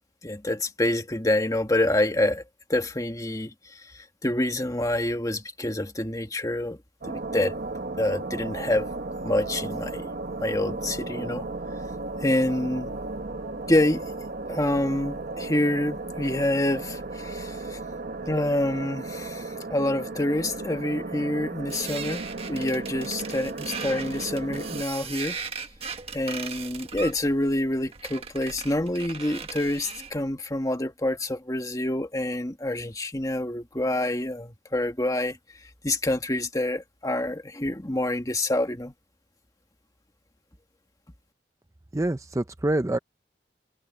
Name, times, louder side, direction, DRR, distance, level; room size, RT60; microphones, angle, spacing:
voice 1, 0.2-2.4 2.7-6.8 7.0-7.6 8.0-8.9 9.2-10.1 10.4-11.5 12.2-13.0 13.7-14.0 14.5-17.8 18.3-25.4 26.1-35.4 35.8-38.9, left 1 dB, 20° left, 1.9 m, -27 dB
sound 1, 7.0-24.8, right 3 dB, 55° right, 1.2 m, -35 dB
sound 2, 21.7-30.2, right 5 dB, 35° right, 1.6 m, -38 dB
voice 2, 41.9-43.0, right 1 dB, 20° right, 0.5 m, -26 dB
head